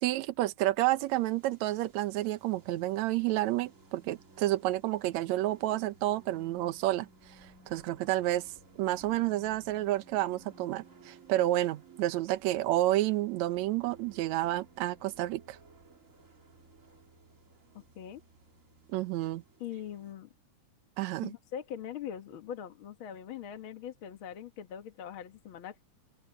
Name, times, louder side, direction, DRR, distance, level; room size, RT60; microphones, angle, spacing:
voice 1, 0.0-7.1 7.7-8.5 8.8-15.6 18.9-19.4 21.0-21.3, right 15 dB, 70° right, 2.0 m, -30 dB
sound 1, 1.1-20.1, right 4 dB, 30° right, 2.0 m, -58 dB
voice 2, 19.6-20.3 21.2-25.8, left 9 dB, 50° left, 1.7 m, -42 dB
omnidirectional pair, 3.7 m